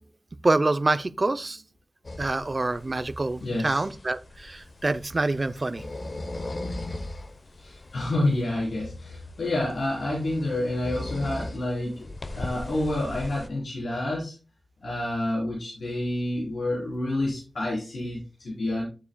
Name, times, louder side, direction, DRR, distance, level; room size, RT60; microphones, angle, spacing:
voice 1, 0.4-1.6 2.2-5.8, right 2 dB, 30° right, 13 dB, 0.5 m, -26 dB
sound 1, 2.0-13.5, left 2 dB, 40° left, 0.8 m, -39 dB
voice 2, 3.4-3.9 7.5-14.4 14.8-18.8, left 1 dB, 75° left, -6 dB, 3.5 m, -29 dB
11.0 x 7.0 x 2.2 m, 0.33 s
wide cardioid pair, 105°, 0 cm